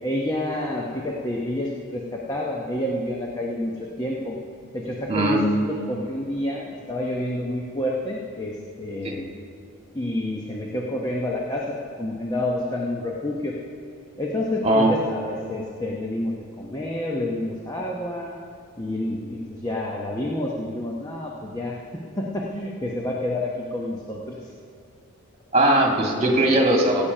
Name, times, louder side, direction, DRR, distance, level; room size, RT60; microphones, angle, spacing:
voice 1, 0.0-4.4 4.7-9.3 9.9-13.6 14.2-18.4 18.8-24.5, left 1 dB, 15° left, -2 dB, 0.9 m, -29 dB
voice 2, 5.1-5.5 9.0-9.2 14.6-14.9 25.5-27.1, right 1 dB, 30° right, 0 dB, 1.7 m, -19 dB
16.5 x 8.9 x 5.5 m, 2.3 s
head